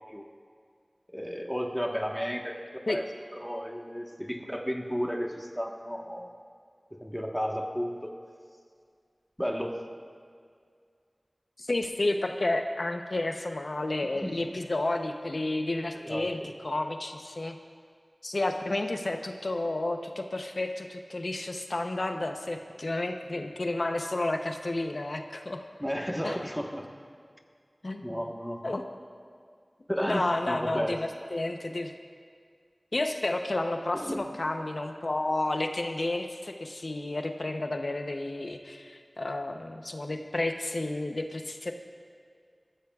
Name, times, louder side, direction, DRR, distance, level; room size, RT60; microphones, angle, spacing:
voice 1, 1.1-2.6 2.9-3.1 3.3-6.3 6.9-8.1 9.4-9.8 14.2-14.4 16.0-16.3 25.8-26.9 28.0-28.6 29.9-31.0 33.9-34.2, equal, ahead, 1 dB, 1.3 m, -33 dB
voice 2, 11.6-17.6 18.2-25.6 26.2-26.4 27.8-28.2 28.6-28.8 30.1-31.0 31.3-31.9 32.9-41.7, left 2 dB, 70° left, 5 dB, 0.8 m, -31 dB
21.0 x 14.5 x 2.4 m, 2.1 s
wide cardioid pair, 50°, 0 cm